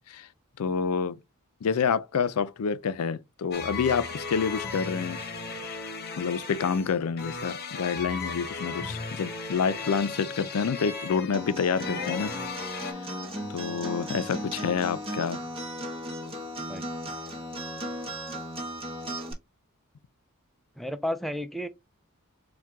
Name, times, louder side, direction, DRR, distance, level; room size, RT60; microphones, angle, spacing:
voice 1, 0.6-1.2 1.6-5.2 6.2-12.3 13.5-15.4, left 6 dB, 85° left, 0.4 m, -28 dB
sound 1, 3.5-12.9, left 4 dB, 50° left, 0.9 m, -36 dB
Acoustic guitar, 11.3-19.3, equal, 25° right, 1.2 m, -36 dB
voice 2, 20.8-21.7, equal, ahead, 0.4 m, -32 dB
4.5 x 2.3 x 3.6 m
head